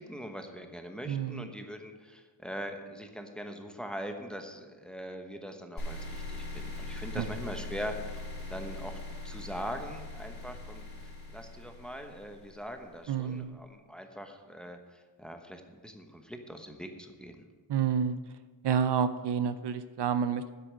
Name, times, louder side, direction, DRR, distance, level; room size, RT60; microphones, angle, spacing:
voice 1, 0.0-8.2 8.5-10.9 11.3-17.4, equal, ahead, 4 dB, 1.0 m, -42 dB
voice 2, 1.1-1.5 7.1-7.3 13.1-13.6 17.7-18.2 18.6-20.5, right 7 dB, 65° right, 12 dB, 0.6 m, -29 dB
sound 1, 5.8-12.9, left 2 dB, 30° left, 3.5 m, -41 dB
9.8 x 8.3 x 6.3 m, 1.4 s
wide cardioid pair, 135°, 44 cm